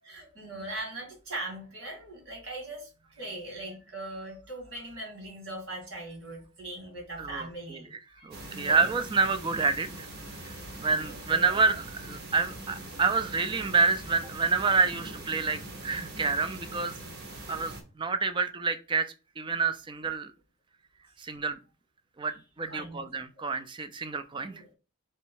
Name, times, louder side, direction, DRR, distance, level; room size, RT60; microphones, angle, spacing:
voice 1, 0.0-8.9 10.7-11.6 22.7-23.0 24.3-24.7, right 1 dB, 65° right, 1 dB, 2.2 m, -41 dB
voice 2, 7.2-7.8 8.2-10.1 10.4-17.0 17.5-20.3 21.2-21.6 22.2-24.6, right 4 dB, 20° right, 10 dB, 0.3 m, -28 dB
sound 1, 8.3-17.8, right 1 dB, 50° right, 1.0 m, -42 dB
3.4 x 3.1 x 4.6 m, 0.33 s
head